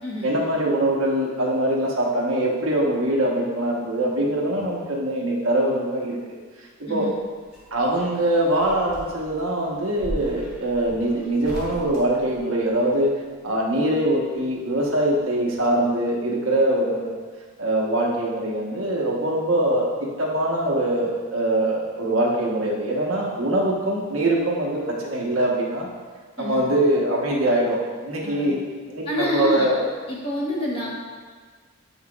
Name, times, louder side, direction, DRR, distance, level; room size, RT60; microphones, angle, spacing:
voice 1, 0.2-6.2 6.8-7.1 7.7-13.1 13.4-17.2 17.6-19.9 20.2-25.9 26.4-28.6 28.9-29.8, right 1 dB, 70° right, -3 dB, 1.1 m, -23 dB
sound 1, 7.2-13.0 14.4-15.3 15.5-15.6, equal, 5° right, 1.3 m, -39 dB
voice 2, 28.2-28.5 29.1-29.7 30.1-30.9, left 1 dB, 25° left, -5 dB, 1.2 m, -27 dB
7.9 x 5.7 x 2.4 m, 1.5 s
head